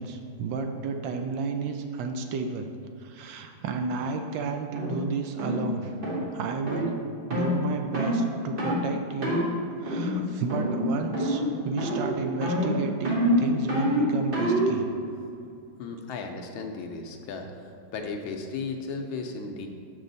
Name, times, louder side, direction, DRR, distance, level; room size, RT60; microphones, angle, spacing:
voice 1, 0.0-2.7 3.0-5.9 6.3-7.0 7.3-9.4 9.8-14.9, right 4 dB, 75° right, 5 dB, 1.2 m, -32 dB
sound 1, 4.8-4.9 5.4-5.6 6.0-6.2 6.7-6.9 7.3-7.5 7.9-8.2 8.6-8.8 9.2-9.5 9.9-10.2 10.5-10.9 11.1-11.5 11.8-12.1 12.4-14.7, equal, 35° right, 1.0 m, -26 dB
voice 2, 15.8-17.5 17.9-19.7, left 4 dB, 85° left, 3 dB, 1.5 m, -35 dB
6.3 x 6.3 x 4.0 m, 2.5 s
omnidirectional pair, 2.1 m